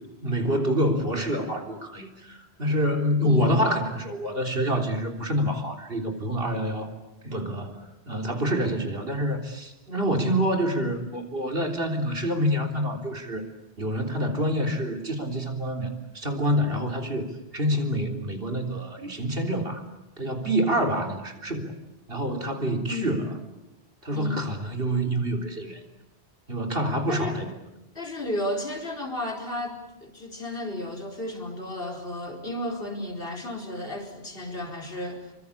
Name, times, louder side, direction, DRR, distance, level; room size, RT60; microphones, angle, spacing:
voice 1, 0.2-6.9 7.2-13.4 13.8-17.3 17.5-19.8 20.2-21.7 22.1-23.3 24.0-25.8 26.5-27.5, equal, 65° right, 4 dB, 3.9 m, -27 dB
voice 2, 24.1-24.4 27.1-27.4 27.9-35.3, left 1 dB, 65° left, 2 dB, 5.0 m, -33 dB
28.5 x 24.0 x 8.5 m, 0.94 s
omnidirectional pair, 1.1 m